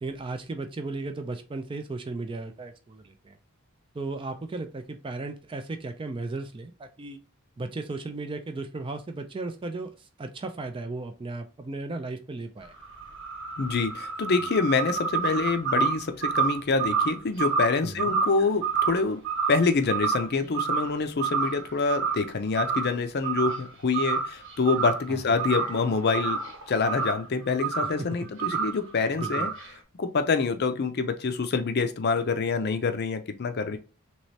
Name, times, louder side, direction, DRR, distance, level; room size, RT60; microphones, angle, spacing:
voice 1, 0.0-3.4 3.9-7.2 7.6-12.7 17.8-18.2 25.1-25.2 28.0-28.1 28.5-28.6 29.2-29.5 33.7-33.8, right 3 dB, 25° right, 7 dB, 0.3 m, -35 dB
sound 1, 12.6-20.3 20.5-21.0 21.2-22.3 22.5-22.9 23.2-23.7 23.9-25.1 25.3-27.3 27.6-28.0 28.4-28.8 29.2-29.7, right 5 dB, 60° right, 1.0 m, -28 dB
voice 2, 13.6-19.2 19.5-26.4 26.7-29.5 30.0-33.8, left 4 dB, 45° left, 8 dB, 0.5 m, -26 dB
3.2 x 3.0 x 2.7 m, 0.33 s
head